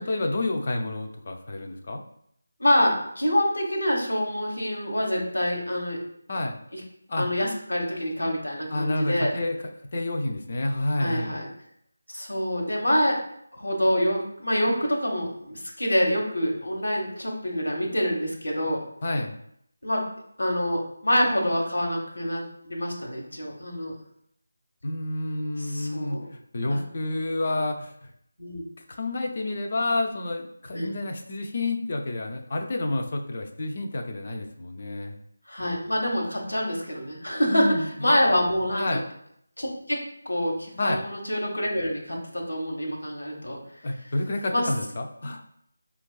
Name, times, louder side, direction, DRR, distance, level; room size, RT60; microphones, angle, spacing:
voice 1, 0.1-2.0 6.3-6.6 7.1-7.3 8.7-11.3 19.0-19.4 24.8-28.1 28.9-35.2 37.5-38.2 38.8-39.0 40.8-41.0 43.8-45.4, left 2 dB, 40° left, 3 dB, 0.4 m, -29 dB
voice 2, 2.6-6.0 6.7-6.8 7.2-9.3 11.0-11.5 12.1-13.2 13.6-18.8 19.8-20.0 20.4-23.9 25.6-26.2 26.7-26.8 28.4-28.6 30.7-30.9 35.5-37.7 38.0-39.0 39.6-43.6 44.5-44.7, equal, 80° left, -1 dB, 1.0 m, -26 dB
4.5 x 2.3 x 2.3 m, 0.70 s
figure-of-eight pair, 160°, 0 cm